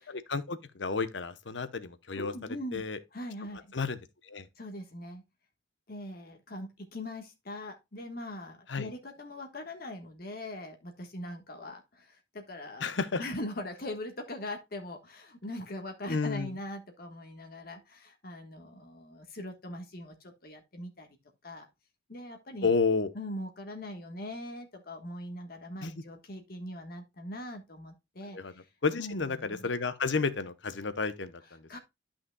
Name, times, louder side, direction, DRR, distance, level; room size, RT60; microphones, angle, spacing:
voice 1, 0.1-2.3 2.7-3.0 3.7-4.5 8.7-8.9 12.8-13.2 16.1-16.6 22.6-23.1 25.8-26.0 28.3-28.5 28.8-31.8, left 4 dB, 80° left, 0.9 m, -31 dB
voice 2, 2.2-2.8 3.1-3.7 4.6-5.2 5.9-12.9 13.2-21.1 21.4-21.7 22.1-22.7 23.1-28.6 29.0-29.7 31.7-31.8, left 1 dB, 55° left, 1.3 m, -41 dB
12.5 x 5.8 x 2.2 m
head